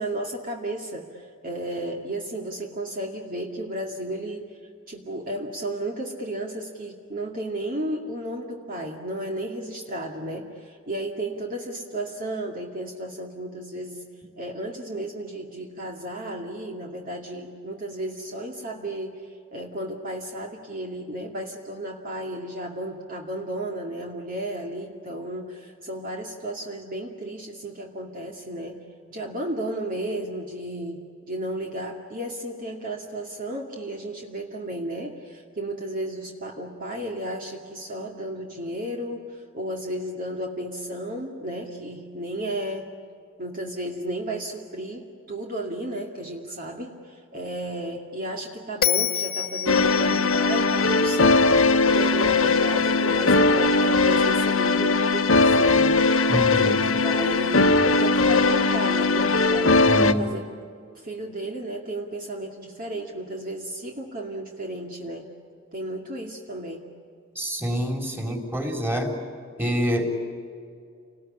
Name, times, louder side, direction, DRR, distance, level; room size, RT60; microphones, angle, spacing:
voice 1, 0.0-4.6 4.9-14.1 14.4-19.2 19.5-28.8 29.1-42.9 43.4-56.0 56.5-59.8 60.2-60.5 61.0-65.3 65.7-66.9, right 1 dB, 45° right, 0 dB, 2.4 m, -33 dB
Bell, 48.8-52.1, left 9 dB, 45° left, 1.6 m, -29 dB
sound 1, 49.7-60.1, left 3 dB, 80° left, 1.4 m, -20 dB
voice 2, 56.3-57.0 59.8-60.3 67.4-69.1 69.6-70.1, equal, 10° right, 2 dB, 3.9 m, -26 dB
29.5 x 20.0 x 10.0 m, 2.3 s
head